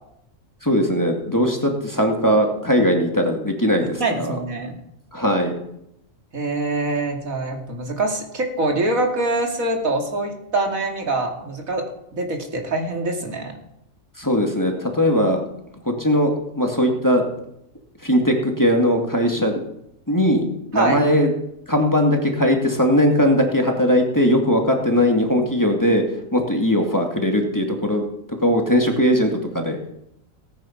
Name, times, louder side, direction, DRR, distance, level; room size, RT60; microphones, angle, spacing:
voice 1, 0.6-4.4 5.1-5.5 14.2-15.4 15.8-17.2 18.0-19.6 20.1-20.4 20.7-21.3 21.7-26.0 26.3-28.0 28.4-29.8, equal, 15° left, 2 dB, 2.1 m, -19 dB
voice 2, 3.8-4.7 6.3-11.8 12.1-13.5 20.7-21.0, right 2 dB, 90° right, 3 dB, 2.8 m, -24 dB
18.5 x 9.3 x 5.8 m, 0.79 s
omnidirectional pair, 1.4 m